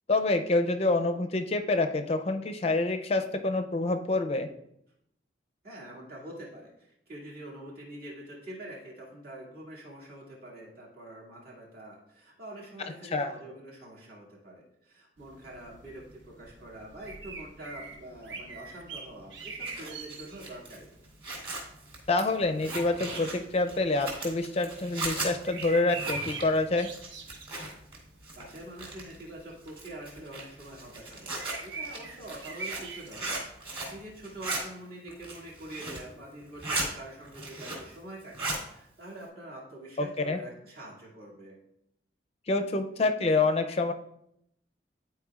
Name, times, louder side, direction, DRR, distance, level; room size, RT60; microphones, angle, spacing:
voice 1, 0.1-4.5 13.1-13.3 22.1-26.9 40.0-40.4 42.5-43.9, left 2 dB, 35° left, 7 dB, 0.5 m, -27 dB
voice 2, 5.6-20.9 28.3-41.6, right 1 dB, 55° right, -5 dB, 2.1 m, -45 dB
sound 1, 15.2-34.5, right 4 dB, 80° right, 1.0 m, -45 dB
Zipper (clothing), 19.4-28.0 28.2-29.2 29.7-34.0 34.2-34.6 35.1-36.1 36.4-36.9 37.2-38.0 38.2-38.6, right 2 dB, 30° right, 2.7 m, -37 dB
11.0 x 4.5 x 2.4 m, 0.76 s
head